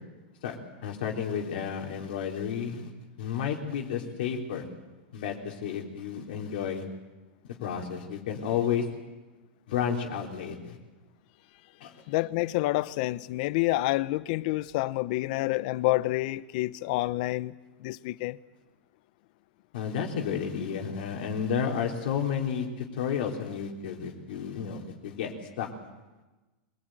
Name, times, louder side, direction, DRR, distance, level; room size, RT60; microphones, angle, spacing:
voice 1, 0.8-2.9 3.2-4.7 5.1-6.8 7.5-8.9 9.7-10.8 11.8-11.9 19.7-25.7, left 7 dB, 65° left, 3.6 m, -31 dB
voice 2, 12.1-17.5 17.8-18.4, left 18 dB, 50° left, 0.8 m, -28 dB
24.5 x 19.0 x 9.1 m
supercardioid pair, 155°, 6 cm